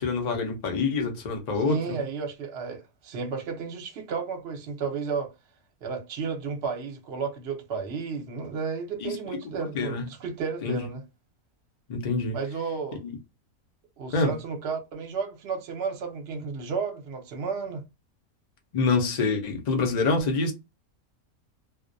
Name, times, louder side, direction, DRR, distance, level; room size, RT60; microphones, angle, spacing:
voice 1, 0.0-2.0 9.0-10.0 10.6-10.9 11.9-12.4 13.0-13.2 14.1-14.3 18.7-20.5, left 4 dB, 55° left, 0.4 m, -26 dB
voice 2, 1.6-5.3 5.8-11.0 12.3-13.0 14.0-17.8, right 5 dB, 55° right, 0.8 m, -32 dB
2.3 x 2.1 x 2.5 m
omnidirectional pair, 1.5 m